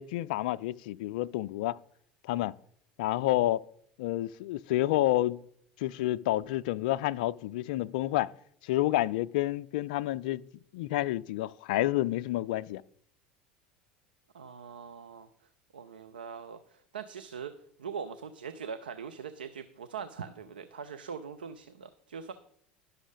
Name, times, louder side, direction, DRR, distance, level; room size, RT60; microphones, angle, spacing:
voice 1, 0.0-1.8 2.2-2.6 3.0-3.6 4.0-5.4 5.8-8.3 8.6-10.4 10.7-12.8, left 15 dB, 65° left, 0.3 m, -29 dB
voice 2, 14.3-15.3 15.7-22.3, right 6 dB, 80° right, 0.5 m, -42 dB
11.0 x 6.2 x 5.0 m
figure-of-eight pair, 75°, 5 cm